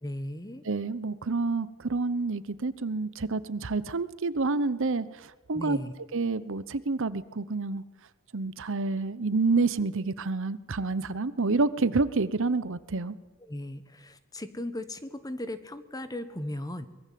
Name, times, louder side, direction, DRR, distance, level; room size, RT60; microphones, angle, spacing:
voice 1, 0.0-0.6 5.5-5.9 13.4-16.9, left 1 dB, 15° left, 11 dB, 1.3 m, -37 dB
voice 2, 0.6-5.8 6.1-7.8 8.3-13.1, right 3 dB, 60° right, 15 dB, 0.9 m, -28 dB
24.0 x 21.0 x 7.6 m, 1.1 s
head